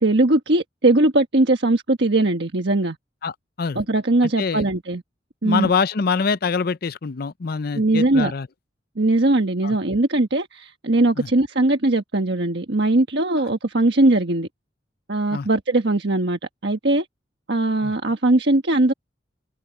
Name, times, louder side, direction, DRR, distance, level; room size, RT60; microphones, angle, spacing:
voice 1, 0.0-3.0 3.7-5.0 5.4-5.7 7.7-8.3 9.0-14.5 15.1-17.1 17.5-18.9, right 2 dB, 65° right, 1.4 m, -20 dB
voice 2, 4.4-4.7 5.4-8.5 9.6-9.8 11.2-11.3 15.3-15.5 17.8-17.9, left 5 dB, 55° left, 0.6 m, -24 dB
head